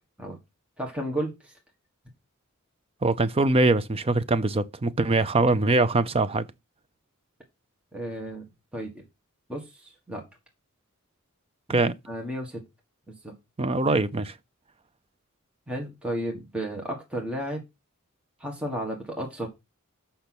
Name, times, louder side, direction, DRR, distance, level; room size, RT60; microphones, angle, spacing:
voice 1, 0.8-1.5 7.9-8.5 8.7-9.0 9.5-10.2 11.7-12.6 13.1-13.3 15.7-17.6 18.4-19.5, right 1 dB, 5° right, 1.5 m, -33 dB
voice 2, 3.0-6.4 11.7-11.9 13.6-14.3, right 2 dB, 25° right, 0.5 m, -23 dB
6.7 x 5.7 x 5.9 m
head